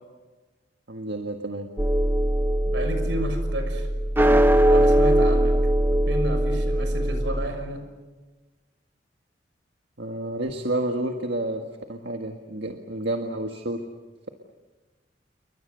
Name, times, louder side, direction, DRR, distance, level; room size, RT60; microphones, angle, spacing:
voice 1, 0.9-1.7 10.0-11.6 11.9-13.8, right 1 dB, 70° right, 3 dB, 1.8 m, -30 dB
sound 1, 1.8-7.5, right 1 dB, 10° right, 0.8 m, -21 dB
voice 2, 2.6-3.9 4.5-5.6 5.9-7.8, right 1 dB, 90° right, 6 dB, 6.3 m, -31 dB
29.0 x 23.5 x 6.8 m, 1.3 s
head